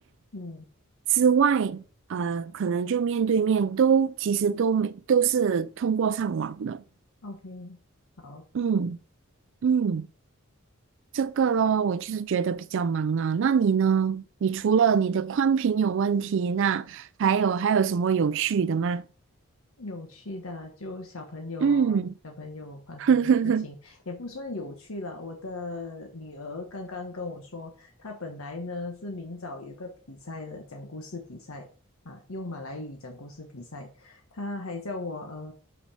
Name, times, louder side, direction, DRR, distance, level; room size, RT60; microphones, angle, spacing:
voice 1, 0.3-0.6 7.2-7.8 8.2-8.4 19.8-31.7 32.0-35.5, left 2 dB, 85° left, 1.2 m, -38 dB
voice 2, 1.1-1.8 2.1-6.8 8.5-9.0 9.6-10.1 11.1-19.0 21.6-22.1 23.0-23.7, right 6 dB, 60° right, 0.4 m, -24 dB
6.7 x 5.9 x 5.6 m
head